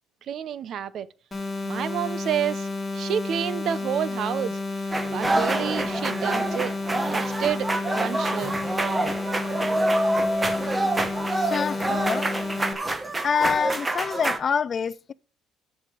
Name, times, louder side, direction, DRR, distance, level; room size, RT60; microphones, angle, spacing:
voice 1, 0.3-1.1 1.6-2.7 2.9-6.7 7.0-7.7 7.9-8.6, right 9 dB, 55° right, 0.7 m, -29 dB
sound 1, 1.3-12.7, left 3 dB, 15° left, 2.7 m, -31 dB
sound 2, 4.9-14.4, right 2 dB, 15° right, 1.1 m, -26 dB
voice 2, 11.3-12.3 13.2-15.1, left 6 dB, 40° left, 0.4 m, -26 dB
13.5 x 5.2 x 5.2 m
cardioid pair, 105°, 0 cm